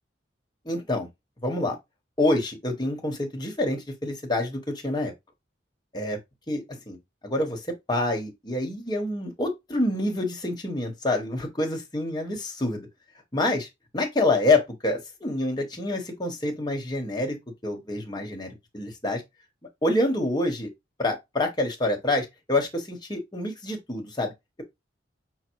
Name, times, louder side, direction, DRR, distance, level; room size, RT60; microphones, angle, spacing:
voice 1, 0.6-1.1 1.4-1.8 2.2-5.1 5.9-6.2 6.5-7.0 7.2-7.6 7.9-12.9 13.3-13.7 13.9-17.4 17.6-19.2 19.8-20.7 21.0-24.3, left 2 dB, 25° left, 1.0 m, -27 dB
5.2 x 2.0 x 4.5 m
head